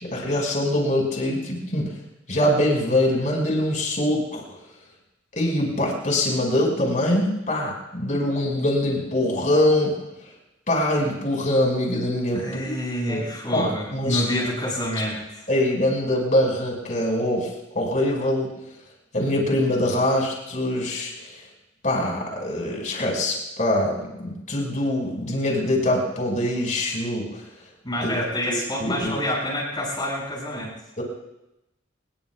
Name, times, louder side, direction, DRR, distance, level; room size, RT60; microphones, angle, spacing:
voice 1, 0.1-1.9 2.3-4.4 5.3-10.0 10.7-12.7 13.1-14.2 15.5-17.5 17.7-18.5 19.1-21.1 21.8-27.4 28.0-28.1 28.5-29.1 31.0-31.1, left 1 dB, 40° left, 0 dB, 5.7 m, -23 dB
voice 2, 12.3-15.4 27.8-30.7, equal, 25° left, -5 dB, 7.4 m, -28 dB
26.0 x 21.5 x 2.4 m, 0.91 s
head